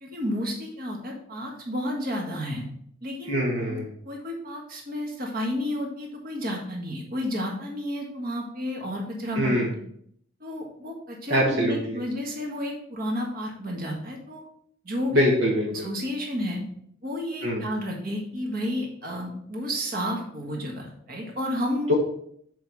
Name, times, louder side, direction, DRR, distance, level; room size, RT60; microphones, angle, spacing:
voice 1, 0.0-2.6 3.0-3.4 3.7-3.8 4.0-9.5 10.4-14.5 14.8-15.2 15.7-16.6 17.0-21.9, equal, 45° right, 0 dB, 1.6 m, -31 dB
voice 2, 3.3-3.9 9.3-9.7 11.3-12.0 15.1-15.9 17.4-17.6 21.9-22.0, equal, 65° right, -2 dB, 1.3 m, -23 dB
6.8 x 4.8 x 4.0 m, 0.68 s
head